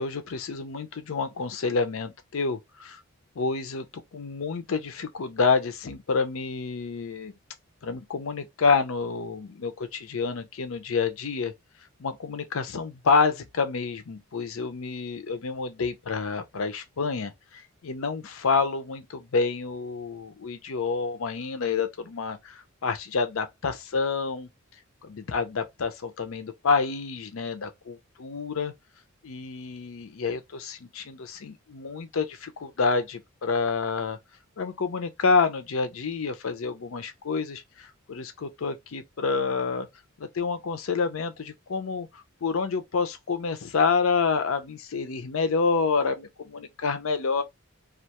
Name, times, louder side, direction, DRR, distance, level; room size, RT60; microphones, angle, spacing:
voice 1, 0.0-3.0 3.4-3.9 4.1-7.3 7.8-11.5 12.0-17.3 17.8-24.5 25.0-28.7 29.2-34.2 34.6-39.9 40.2-42.1 42.4-47.4, left 4 dB, 70° left, 0.5 m, -28 dB
2.4 x 2.3 x 2.8 m
head